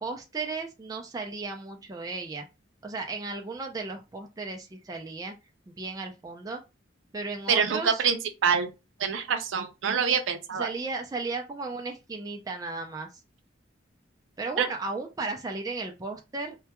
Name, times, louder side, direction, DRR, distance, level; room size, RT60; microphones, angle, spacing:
voice 1, 0.0-2.5 2.8-5.3 5.7-6.6 7.1-8.0 10.6-13.1 14.4-16.6, right 3 dB, 20° right, 0.3 m, -35 dB
voice 2, 7.5-8.7 9.0-10.7 14.6-14.7, right 6 dB, 85° right, 0.5 m, -26 dB
2.2 x 2.2 x 2.8 m
head